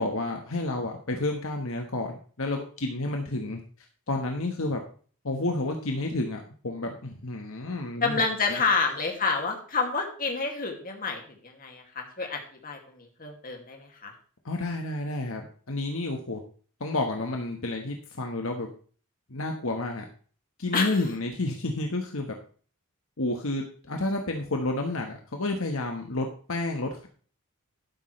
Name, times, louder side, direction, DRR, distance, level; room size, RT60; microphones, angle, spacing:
voice 1, 0.0-3.6 4.1-4.8 5.2-8.2 8.5-8.6 14.4-16.4 16.8-18.7 19.3-20.0 20.6-22.3 23.2-27.1, left 2 dB, 65° left, 3 dB, 1.4 m, -30 dB
voice 2, 8.0-14.1 20.7-21.0, left 4 dB, 40° left, 2 dB, 2.4 m, -29 dB
12.5 x 9.8 x 3.3 m, 0.42 s
head